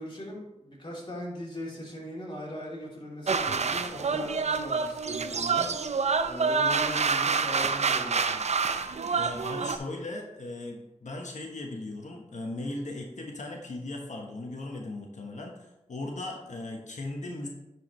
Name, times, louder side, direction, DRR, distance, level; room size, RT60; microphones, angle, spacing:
voice 1, 0.0-8.4, left 1 dB, 40° left, -5 dB, 3.0 m, -39 dB
sound 1, 3.3-9.8, right 5 dB, 60° right, 0.5 m, -27 dB
voice 2, 9.1-17.5, left 2 dB, 70° left, 1 dB, 1.1 m, -38 dB
10.5 x 4.8 x 3.1 m, 0.90 s
wide cardioid pair, 55°, 13 cm